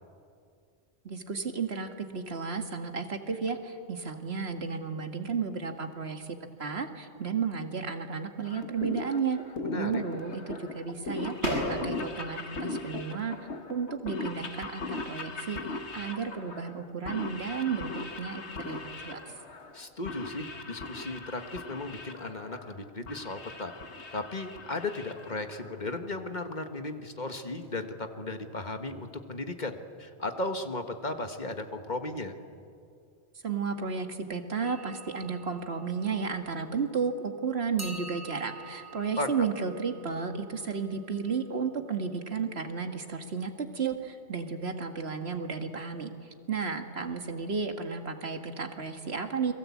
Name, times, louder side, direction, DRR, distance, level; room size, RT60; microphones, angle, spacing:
voice 1, 1.0-9.4 9.7-11.3 11.7-13.3 13.7-17.9 18.2-19.2 33.4-46.1 46.5-49.5, right 5 dB, 65° right, 6 dB, 2.0 m, -33 dB
sound 1, 8.4-25.9, left 3 dB, 80° left, 1.8 m, -39 dB
voice 2, 9.6-10.0 19.7-23.7 24.1-32.3 39.2-39.3, left 2 dB, 40° left, 7 dB, 1.6 m, -36 dB
sound 2, 11.4-27.9, equal, 80° right, 8.1 m, -43 dB
sound 3, 34.6-37.1 37.8-41.7, right 3 dB, 15° right, 2.7 m, -48 dB
29.0 x 22.5 x 8.5 m, 2.4 s
omnidirectional pair, 1.1 m